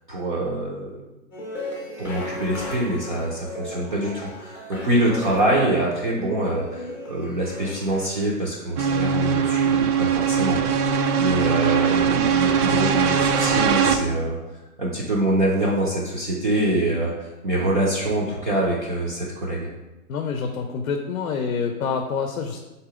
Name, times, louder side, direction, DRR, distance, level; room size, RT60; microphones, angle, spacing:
voice 1, 0.1-0.9 2.0-10.8 11.2-14.4 14.8-19.7, right 1 dB, 35° right, -6 dB, 0.4 m, -25 dB
sound 1, 1.3-8.3, left 1 dB, 15° left, 0.6 m, -36 dB
sound 2, 8.8-14.0, right 7 dB, 80° right, 0.6 m, -21 dB
voice 2, 20.1-22.6, left 5 dB, 65° left, 5 dB, 0.6 m, -27 dB
3.7 x 2.8 x 4.8 m, 1.1 s
hypercardioid pair, 175°, 45 cm